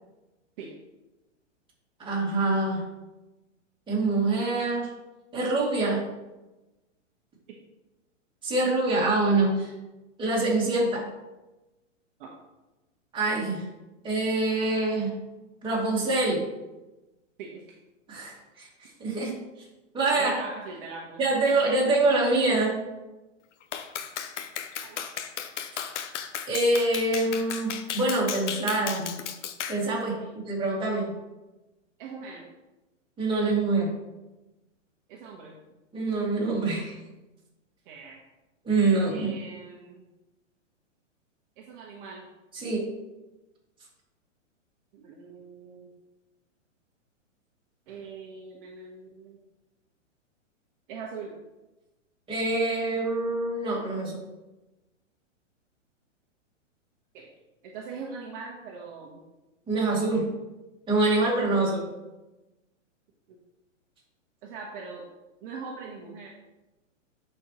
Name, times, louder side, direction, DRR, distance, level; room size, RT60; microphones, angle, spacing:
voice 1, 2.0-2.8 3.9-4.9 5.3-6.0 8.4-9.7 10.2-11.0 13.1-13.6 14.0-15.1 15.6-16.5 18.1-19.3 19.9-20.4 21.2-22.8 26.5-29.1 29.7-30.2 30.5-31.1 33.2-33.9 35.9-36.9 38.6-39.4 42.5-42.9 52.3-54.2 59.7-60.3 60.9-61.9, right 2 dB, 15° right, -5 dB, 2.3 m, -25 dB
voice 2, 20.2-21.2 24.8-25.0 30.2-30.3 32.0-32.4 35.1-35.5 37.8-38.2 39.1-40.1 41.6-42.3 44.9-45.9 47.9-49.4 50.9-51.3 57.1-57.3 57.6-59.2 63.3-63.4 64.4-65.0 65.4-66.3, right 5 dB, 45° right, -2 dB, 1.2 m, -41 dB
Clapping, 23.7-29.8, left 8 dB, 65° left, 0.8 m, -35 dB
10.5 x 4.5 x 3.1 m, 1.1 s
hypercardioid pair, 130°, 38 cm